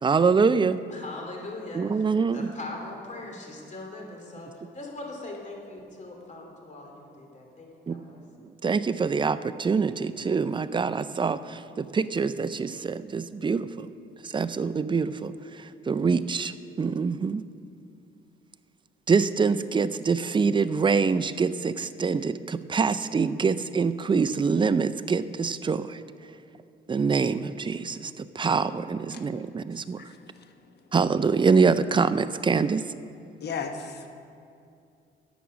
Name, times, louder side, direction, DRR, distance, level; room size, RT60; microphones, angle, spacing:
voice 1, 0.0-0.8 1.7-2.5 7.9-8.0 8.6-13.9 14.2-15.3 15.6-17.4 19.1-26.0 26.9-30.0 30.9-32.8, right 5 dB, 25° right, 12 dB, 0.4 m, -25 dB
voice 2, 0.9-2.0 2.3-8.2, left 2 dB, 40° left, 0 dB, 2.6 m, -41 dB
voice 3, 29.7-30.5 33.4-34.1, left 5 dB, 55° left, 6 dB, 1.1 m, -37 dB
11.0 x 8.1 x 6.1 m, 2.5 s
cardioid pair, 90°, 20 cm